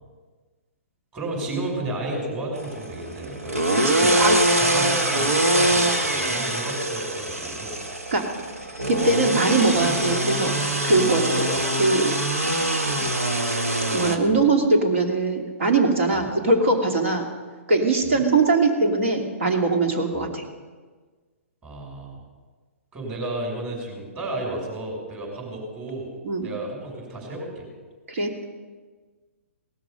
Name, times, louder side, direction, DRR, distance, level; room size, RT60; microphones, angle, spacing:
voice 1, 1.1-3.6 4.0-7.7 9.7-9.9 11.5-11.7 14.2-14.4 16.1-16.3 18.0-18.2 20.1-20.3 21.6-22.2 22.9-26.1 26.4-27.7, right 2 dB, 25° right, 0 dB, 6.1 m, -33 dB
sound 1, 2.5-14.2, right 1 dB, 90° right, 1.4 m, -23 dB
voice 2, 3.8-4.4 8.1-8.4 8.9-12.2 13.9-17.2 17.7-20.4 26.2-26.5 28.1-28.3, right 3 dB, 65° right, 3 dB, 2.7 m, -21 dB
18.0 x 13.5 x 5.3 m, 1.4 s
figure-of-eight pair, 125°, 8 cm